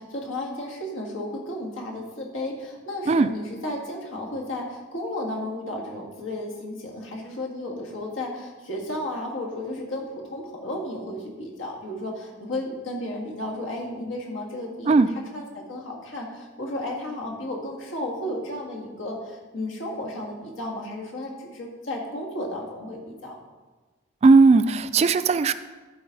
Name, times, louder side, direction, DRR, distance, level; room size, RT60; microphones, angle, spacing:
voice 1, 0.0-15.0 15.3-23.4, left 1 dB, 85° left, -1 dB, 1.8 m, -33 dB
voice 2, 24.2-25.5, right 4 dB, 35° right, 12 dB, 0.3 m, -17 dB
13.0 x 5.0 x 4.0 m, 1.3 s
head